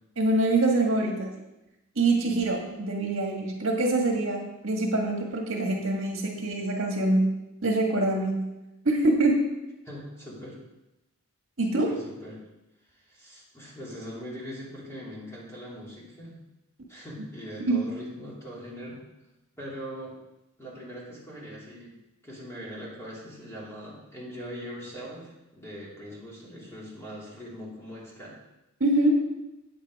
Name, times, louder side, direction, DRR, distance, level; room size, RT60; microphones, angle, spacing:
voice 1, 0.2-1.4 2.0-7.3 7.6-8.4 8.9-9.4 11.6-11.9 17.6-17.8 28.8-29.2, right 2 dB, 65° right, 0 dB, 1.8 m, -24 dB
voice 2, 9.8-10.6 11.8-12.4 12.9-16.3 16.9-19.0 19.5-20.2 20.6-22.0 22.2-28.4, equal, 15° left, -6 dB, 2.9 m, -41 dB
8.9 x 8.7 x 4.8 m, 0.97 s
head